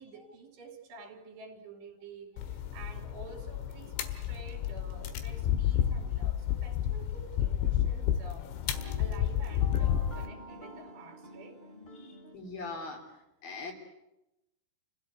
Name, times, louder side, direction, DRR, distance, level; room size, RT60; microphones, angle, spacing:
voice 1, 0.0-11.6, right 3 dB, 65° right, 2 dB, 5.2 m, -50 dB
sound 1, 2.4-10.3, left 10 dB, 75° left, 3.8 m, -31 dB
sound 2, 4.7-7.1 8.6-12.4, equal, 15° left, 2.9 m, -50 dB
voice 2, 11.9-13.0 13.4-13.7, left 3 dB, 50° left, 2 dB, 5.0 m, -41 dB
30.0 x 16.5 x 9.7 m, 0.92 s
omnidirectional pair, 5.4 m